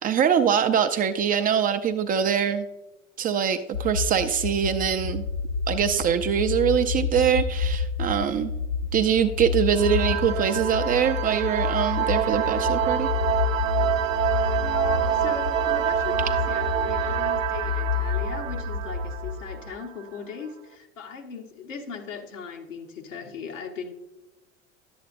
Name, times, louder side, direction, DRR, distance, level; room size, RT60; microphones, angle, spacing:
voice 1, 0.0-2.7 3.2-5.2 5.7-8.5 8.9-13.1, right 8 dB, 25° right, 9 dB, 0.4 m, -23 dB
sound 1, 3.7-19.7, left 6 dB, 55° left, 0.6 m, -29 dB
sound 2, 9.7-20.1, right 10 dB, 80° right, 0.6 m, -27 dB
voice 2, 14.5-23.9, left 5 dB, 75° left, 3 dB, 1.2 m, -38 dB
11.0 x 7.7 x 2.5 m, 1.0 s
figure-of-eight pair, 75°, 38 cm